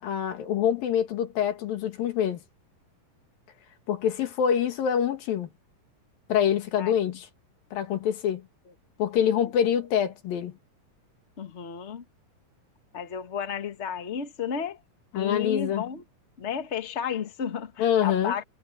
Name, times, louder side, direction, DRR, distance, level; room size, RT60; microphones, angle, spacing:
voice 1, 0.0-2.4 3.9-5.5 6.3-7.3 7.7-8.5 9.0-10.5 15.1-15.8 17.8-18.3, left 9 dB, 80° left, 3.7 m, -25 dB
voice 2, 11.4-12.0 12.9-14.8 15.1-16.0 16.4-18.4, left 7 dB, 40° left, 1.0 m, -32 dB
omnidirectional pair, 4.0 m